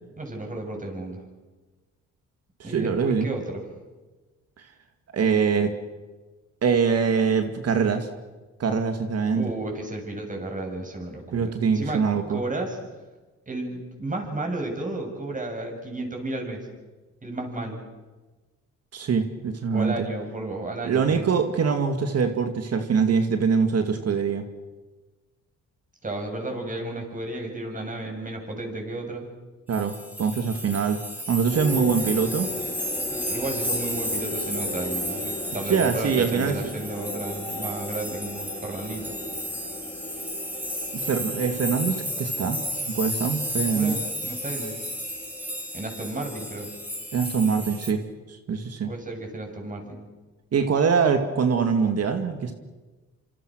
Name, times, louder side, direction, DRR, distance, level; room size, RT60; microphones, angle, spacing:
voice 1, 0.2-1.2 2.6-3.6 9.3-12.0 12.3-12.8 13.5-16.7 17.2-17.8 19.7-21.3 26.0-29.3 33.1-39.2 43.7-44.9 45.7-46.7 48.8-50.0, right 2 dB, 25° right, 3 dB, 7.5 m, -33 dB
voice 2, 2.6-3.3 5.1-5.7 6.6-8.1 8.6-9.5 11.3-12.4 18.9-20.1 20.8-24.4 29.7-31.0 31.3-32.5 35.7-36.6 40.9-42.6 42.9-44.0 47.1-48.9 50.5-52.5, right 6 dB, 55° right, 7 dB, 2.3 m, -23 dB
sound 1, 29.7-47.9, equal, 5° right, 5.4 m, -33 dB
sound 2, 31.5-48.0, left 2 dB, 10° left, 4.8 m, -39 dB
27.0 x 26.5 x 6.4 m, 1.2 s
cardioid pair, 90°, 30 cm